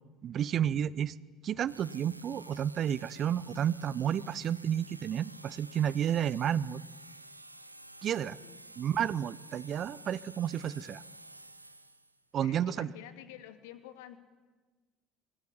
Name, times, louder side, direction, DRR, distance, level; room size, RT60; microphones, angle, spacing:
voice 1, 0.2-1.1 1.4-6.8 8.0-8.4 8.8-11.0 12.3-12.9, right 9 dB, 45° right, 20 dB, 0.7 m, -31 dB
sound 1, 1.7-12.2, right 1 dB, 90° right, 1.0 m, -51 dB
voice 2, 8.2-8.5 12.4-14.2, left 12 dB, 65° left, 8 dB, 2.2 m, -49 dB
25.0 x 19.5 x 9.9 m, 1.3 s
figure-of-eight pair, 60°, 0 cm